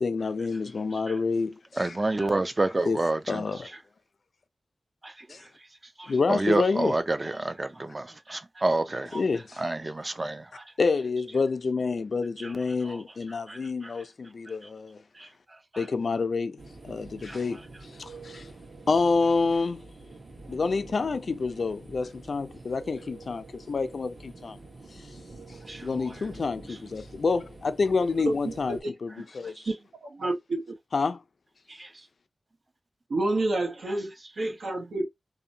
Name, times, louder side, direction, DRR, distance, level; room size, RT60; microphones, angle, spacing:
voice 1, 0.0-1.9 2.9-3.0 3.3-3.7 5.3-5.4 6.1-6.9 9.1-9.6 10.8-15.0 15.8-17.6 18.0-18.5 18.9-19.9 20.5-24.6 25.8-29.6 30.9-31.2, left 4 dB, 65° left, 0.3 m, -28 dB
voice 2, 1.7-3.5 5.0-5.5 6.0-9.2 9.6-10.6 12.4-12.5 12.8-13.0 13.5-13.9 15.2-15.3 15.7-15.8 17.3-17.4 25.7-26.2 29.6-29.7 31.7-32.0 34.4-34.5, right 2 dB, 30° right, 0.4 m, -29 dB
sound 1, 16.6-28.8, right 3 dB, 60° right, 1.1 m, -47 dB
voice 3, 28.2-28.5 28.8-28.9 29.7-30.6 33.1-35.1, right 2 dB, 80° right, 0.9 m, -29 dB
2.7 x 2.2 x 2.6 m
wide cardioid pair, 95°, 0 cm